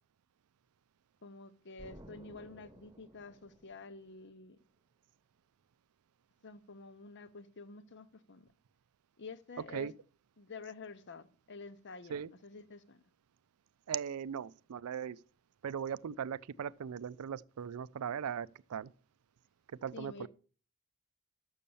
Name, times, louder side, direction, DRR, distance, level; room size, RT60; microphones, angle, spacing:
voice 1, 1.2-4.6 6.4-8.5 9.2-9.9 10.4-13.0 19.9-20.3, left 4 dB, 55° left, 0.8 m, -49 dB
Explosion, 1.8-4.5, right 1 dB, 20° right, 1.2 m, -56 dB
voice 2, 13.9-15.2 15.6-18.9 19.8-20.3, right 8 dB, 90° right, 0.4 m, -39 dB
6.9 x 6.4 x 7.0 m
head